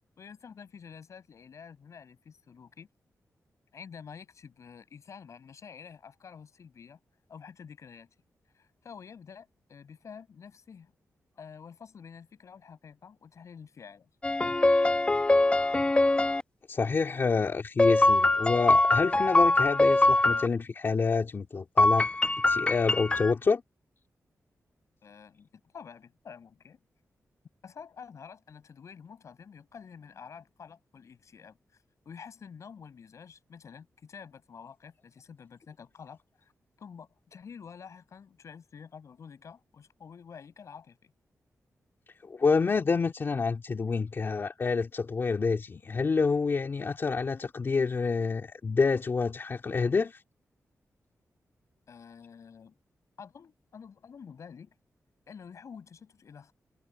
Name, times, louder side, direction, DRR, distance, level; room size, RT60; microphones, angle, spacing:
voice 1, 0.2-2.9 3.7-7.0 7.3-8.1 8.5-10.9 11.4-14.1 25.0-25.5 25.7-26.8 27.6-31.6 32.1-36.5 36.8-41.1 51.9-52.8 53.2-54.7 55.3-56.5, left 6 dB, 65° left, 7.3 m, -49 dB
sound 1, 14.2-16.4 17.8-20.5 21.8-23.3, left 2 dB, 20° left, 1.0 m, -23 dB
voice 2, 16.7-22.1 22.5-23.6 42.2-50.2, left 4 dB, 40° left, 2.9 m, -28 dB
wide cardioid pair, 150°, 6 cm